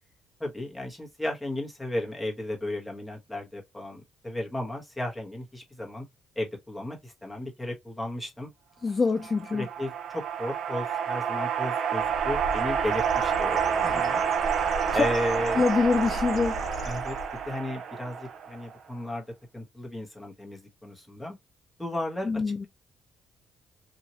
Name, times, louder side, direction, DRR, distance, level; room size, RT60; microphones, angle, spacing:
voice 1, 0.4-6.1 6.3-8.5 9.5-14.2 14.9-15.6 16.8-17.2 17.4-19.2 19.5-21.4 21.8-22.3, left 1 dB, 10° left, 1.2 m, -34 dB
voice 2, 8.8-9.7 13.8-14.0 15.5-16.6 22.2-22.7, left 4 dB, 30° left, 0.5 m, -25 dB
sound 1, 9.2-18.8, right 7 dB, 65° right, 0.6 m, -29 dB
Bird, 12.0-17.5, left 1 dB, 50° left, 1.0 m, -39 dB
2.9 x 2.7 x 2.8 m
cardioid pair, 90°, 0 cm